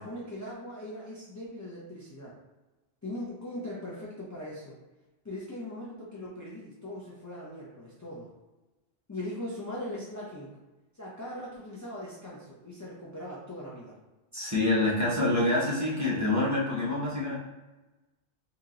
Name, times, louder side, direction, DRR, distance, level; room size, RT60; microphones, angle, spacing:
voice 1, 0.0-2.4 3.0-4.8 5.2-8.3 9.1-10.5 10.9-13.9, left 1 dB, 25° left, -7 dB, 0.4 m, -40 dB
voice 2, 14.3-17.3, left 2 dB, 15° right, -8 dB, 0.9 m, -26 dB
2.9 x 2.9 x 3.8 m, 1.1 s
omnidirectional pair, 1.3 m